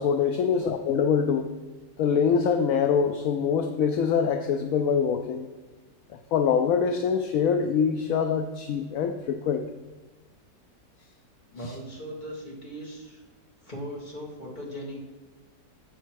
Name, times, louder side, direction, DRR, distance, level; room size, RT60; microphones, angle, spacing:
voice 1, 0.0-1.5 2.0-5.5 6.1-9.7 11.6-11.7, left 6 dB, 70° left, 6 dB, 0.9 m, -24 dB
voice 2, 11.5-13.2 13.6-15.0, equal, 25° left, -3 dB, 2.1 m, -39 dB
7.7 x 7.0 x 4.6 m, 1.3 s
omnidirectional pair, 1.8 m